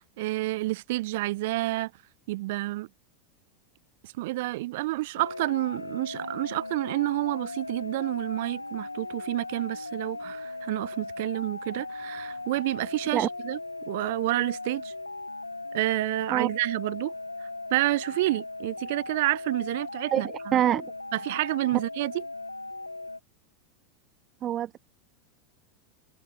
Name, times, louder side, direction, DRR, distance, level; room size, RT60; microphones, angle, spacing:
voice 1, 0.0-1.9 2.3-2.9 4.0-13.6 13.9-14.9 15.7-17.1 17.7-20.6 21.1-22.2, right 19 dB, 60° right, 0.5 m, -29 dB
sound 1, 5.2-23.2, left 2 dB, 90° left, 1.1 m, -38 dB
voice 2, 20.1-20.9 24.4-24.8, right 11 dB, 35° right, 0.8 m, -25 dB
figure-of-eight pair, 85°, 0 cm